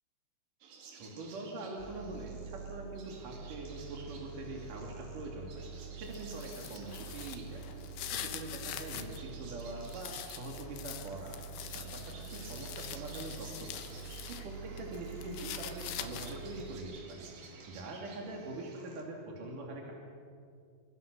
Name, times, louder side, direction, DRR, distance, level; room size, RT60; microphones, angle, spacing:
sound 1, 0.6-19.0, right 5 dB, 75° right, 4.7 m, -54 dB
voice 1, 0.9-5.6 5.9-7.6 8.2-11.4 11.7-19.9, right 2 dB, 55° right, 0 dB, 3.9 m, -44 dB
sound 2, 1.8-16.8, right 6 dB, 15° left, 5.2 m, -47 dB
sound 3, 6.0-9.2 9.6-14.5 14.8-16.5, left 11 dB, 80° left, 3.3 m, -44 dB
27.5 x 24.5 x 6.8 m, 2.3 s
omnidirectional pair, 4.9 m